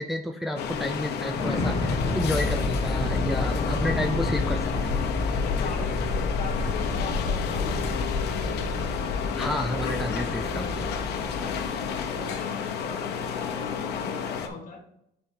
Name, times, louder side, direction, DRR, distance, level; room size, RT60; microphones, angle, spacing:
voice 1, 0.0-5.0 5.6-5.7 9.4-10.9, equal, ahead, 4 dB, 0.6 m, -31 dB
sound 1, 0.6-14.5, left 6 dB, 75° left, 1.0 m, -31 dB
sound 2, 1.3-12.4, left 3 dB, 35° left, 1.2 m, -29 dB
voice 2, 5.3-8.0 11.9-14.8, left 5 dB, 50° left, 3 dB, 1.9 m, -40 dB
9.6 x 4.8 x 2.9 m, 0.78 s
cardioid pair, 110°, 17 cm